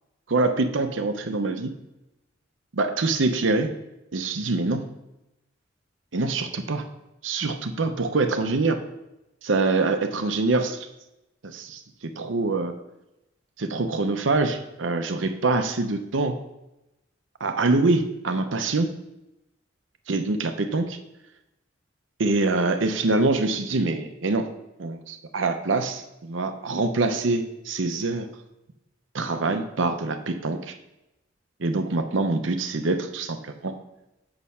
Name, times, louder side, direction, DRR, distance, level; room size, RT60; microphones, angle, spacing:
voice 1, 0.3-1.7 2.7-3.7 4.1-4.8 6.1-6.8 7.2-8.8 9.4-10.8 11.4-12.7 13.6-16.4 17.4-18.9 20.1-21.0 22.2-24.5 24.8-28.3 29.1-30.7 31.6-33.7, right 3 dB, 75° right, 7 dB, 0.7 m, -25 dB
6.8 x 6.5 x 5.5 m, 0.92 s
head